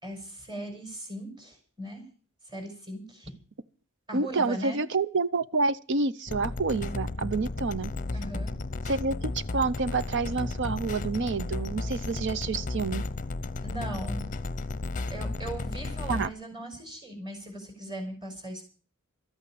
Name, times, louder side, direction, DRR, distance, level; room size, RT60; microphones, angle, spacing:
voice 1, 0.0-2.0 2.4-3.3 4.1-4.8 8.1-8.5 13.6-14.4 15.1-18.7, right 1 dB, 20° right, 5.4 m, -39 dB
voice 2, 4.1-7.9 8.9-13.0 16.1-16.3, right 3 dB, 60° right, 0.7 m, -28 dB
sound 1, 6.3-16.3, left 2 dB, 35° left, 0.7 m, -34 dB
13.5 x 9.1 x 8.6 m
head